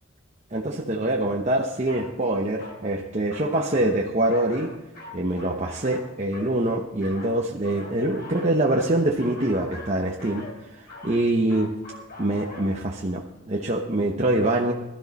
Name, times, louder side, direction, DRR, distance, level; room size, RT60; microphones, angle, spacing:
voice 1, 0.5-4.7 5.1-11.7 12.2-14.7, right 1 dB, 35° right, 0 dB, 1.0 m, -24 dB
sound 1, 1.8-2.1 2.6-2.8 3.3-4.0 4.3-6.6 7.0-12.7, left 2 dB, 55° left, 4.0 m, -42 dB
17.0 x 12.5 x 4.2 m, 1.0 s
head